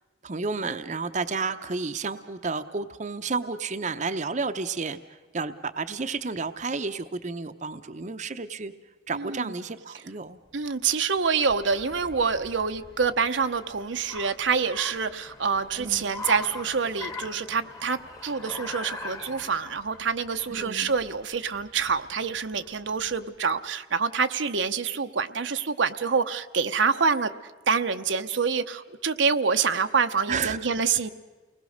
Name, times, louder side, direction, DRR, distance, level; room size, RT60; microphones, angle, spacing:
voice 1, 0.2-5.0 5.3-8.7 9.1-10.4 15.8-16.0 20.5-20.9 30.3-30.6, right 4 dB, 40° right, 9 dB, 0.7 m, -31 dB
voice 2, 9.1-9.5 10.5-27.3 27.7-31.1, right 5 dB, 80° right, 8 dB, 0.9 m, -26 dB
Car, 10.5-23.4, left 3 dB, 20° left, 1.2 m, -42 dB
29.0 x 20.0 x 6.5 m, 1.3 s
head